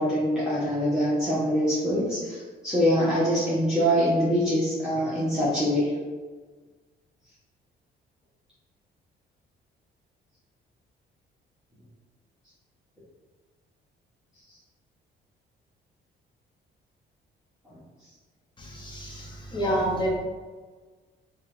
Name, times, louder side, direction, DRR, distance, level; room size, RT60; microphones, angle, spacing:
voice 1, 0.0-5.9 17.7-17.8, equal, 5° right, -11 dB, 1.0 m, -24 dB
voice 2, 18.6-20.2, equal, 25° left, -3 dB, 0.9 m, -28 dB
2.8 x 2.7 x 3.2 m, 1.4 s
cardioid pair, 90°, 20 cm